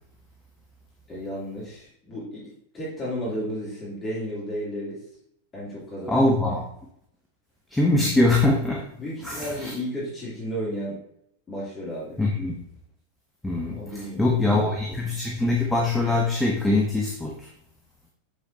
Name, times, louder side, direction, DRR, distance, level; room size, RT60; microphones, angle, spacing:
voice 1, 1.1-5.0 5.5-6.4 9.0-11.0 11.5-12.2 13.6-14.7, equal, 20° left, -7 dB, 2.8 m, -33 dB
voice 2, 6.1-6.7 7.7-8.9 9.2-9.7 12.2-12.6 13.4-17.5, left 2 dB, 5° left, -1 dB, 1.0 m, -23 dB
7.1 x 7.0 x 2.7 m, 0.73 s
figure-of-eight pair, 90°, 0 cm